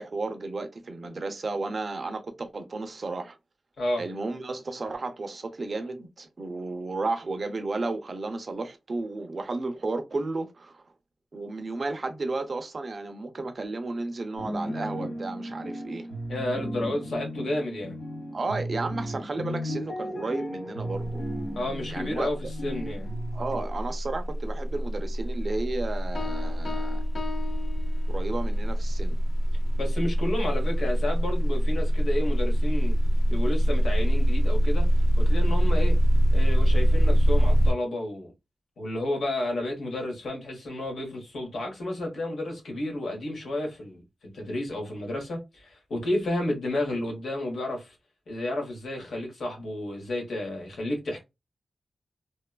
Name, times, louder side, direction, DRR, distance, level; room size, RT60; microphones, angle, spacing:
voice 1, 0.0-3.4 4.0-10.8 11.3-16.1 18.3-21.2 21.9-22.3 23.0-23.1 23.3-27.0 28.1-29.2, right 3 dB, 45° right, 0.5 m, -33 dB
sound 1, 14.4-23.6, equal, 70° left, 1.2 m, -35 dB
voice 2, 16.3-17.9 21.6-22.4 22.6-23.1 29.8-32.9 33.3-34.9 35.2-36.0 36.3-38.3 38.8-47.9 48.3-51.2, left 1 dB, 90° left, 1.2 m, -31 dB
sound 2, 21.0-21.3 21.6-37.7, equal, 10° left, 0.6 m, -24 dB
sound 3, 26.2-28.5, left 6 dB, 55° left, 0.5 m, -38 dB
2.8 x 2.3 x 2.2 m
wide cardioid pair, 100°, 0 cm